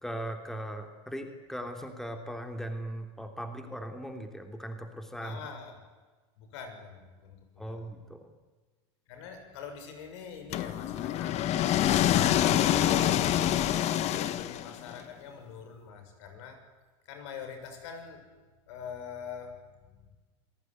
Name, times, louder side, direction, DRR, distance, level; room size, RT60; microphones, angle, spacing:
voice 1, 0.0-5.4 7.6-8.3, right 1 dB, 5° left, 5 dB, 3.1 m, -39 dB
voice 2, 5.2-5.8 6.4-7.9 9.1-11.4 12.2-13.3 14.0-16.6 17.1-18.3 18.7-20.2, left 6 dB, 80° left, 6 dB, 6.9 m, -44 dB
sound 1, 10.5-14.9, left 12 dB, 50° left, 1.5 m, -26 dB
28.0 x 18.0 x 9.6 m, 1.3 s
supercardioid pair, 125°, 15 cm